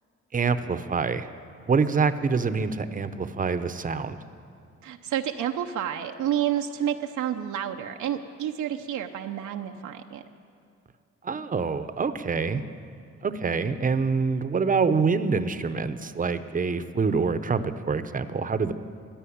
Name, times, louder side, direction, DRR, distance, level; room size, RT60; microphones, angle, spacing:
voice 1, 0.3-1.3 1.7-4.2 11.2-12.6 13.2-18.7, right 5 dB, 25° right, 11 dB, 0.8 m, -26 dB
voice 2, 4.8-10.2, right 10 dB, 75° right, 4 dB, 0.8 m, -29 dB
16.0 x 10.5 x 8.7 m, 2.4 s
cardioid pair, 90°, 30 cm